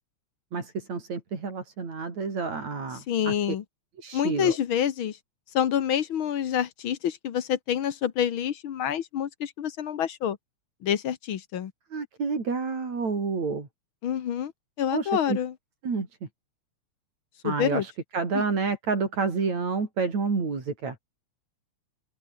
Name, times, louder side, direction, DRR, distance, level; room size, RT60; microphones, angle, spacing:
voice 1, 0.5-3.3 4.0-4.6 11.9-13.7 14.9-15.4 15.8-16.1 17.4-21.0, right 4 dB, 65° right, 6.0 m, -29 dB
voice 2, 3.1-3.6 4.1-5.2 5.5-10.4 10.8-11.7 14.0-14.5 14.8-15.5 17.4-17.8 18.3-18.4, left 9 dB, 55° left, 1.6 m, -27 dB
open air
omnidirectional pair, 3.4 m